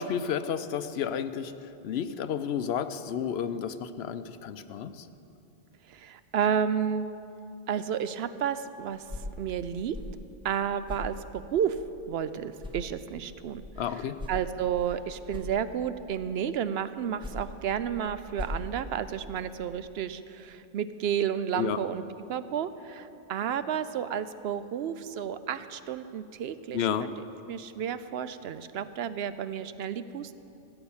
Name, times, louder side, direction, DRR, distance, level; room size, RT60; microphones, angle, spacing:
voice 1, 0.0-1.5 1.8-5.1 13.8-14.2 21.5-21.8 26.7-27.0, left 8 dB, 75° left, 12 dB, 0.8 m, -31 dB
voice 2, 5.9-7.1 7.7-9.0 9.4-10.0 10.4-11.8 12.1-22.0 22.3-30.3, right 8 dB, 70° right, 13 dB, 0.8 m, -31 dB
sound 1, 8.9-12.3 12.6-16.1 16.9-19.6, left 1 dB, 5° right, 1.6 m, -42 dB
16.0 x 8.0 x 7.1 m, 2.8 s
omnidirectional pair, 1.1 m